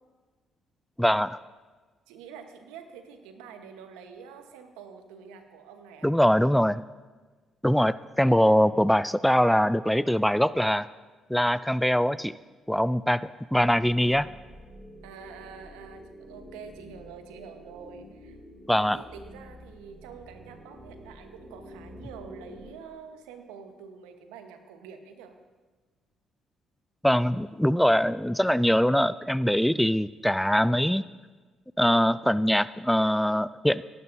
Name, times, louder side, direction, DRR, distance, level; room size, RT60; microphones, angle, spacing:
voice 1, 1.0-1.4 6.0-6.8 7.6-10.9 11.3-12.3 12.7-14.3 18.7-19.0 27.0-31.0 31.8-33.8, equal, 5° left, 17 dB, 0.3 m, -23 dB
voice 2, 2.1-6.1 15.0-18.4 18.8-25.4, right 6 dB, 80° right, 7 dB, 1.1 m, -46 dB
sound 1, 13.5-22.7, equal, 30° right, 3.9 m, -48 dB
18.0 x 12.0 x 2.7 m, 1.4 s
hypercardioid pair, 50°, 0 cm